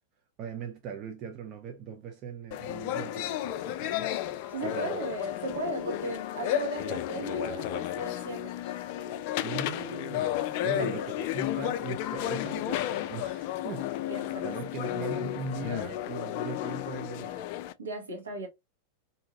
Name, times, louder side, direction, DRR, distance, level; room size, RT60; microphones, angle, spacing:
voice 1, 0.4-4.1 4.6-5.0 9.4-13.9 14.4-17.4, right 5 dB, 35° right, 0.5 m, -39 dB
sound 1, 2.5-17.7, left 13 dB, 45° left, 0.3 m, -33 dB
voice 2, 4.5-8.5 10.8-11.0 14.1-14.5 17.8-18.5, right 2 dB, 70° right, 1.1 m, -36 dB
2.7 x 2.6 x 2.6 m
figure-of-eight pair, 90°, 0 cm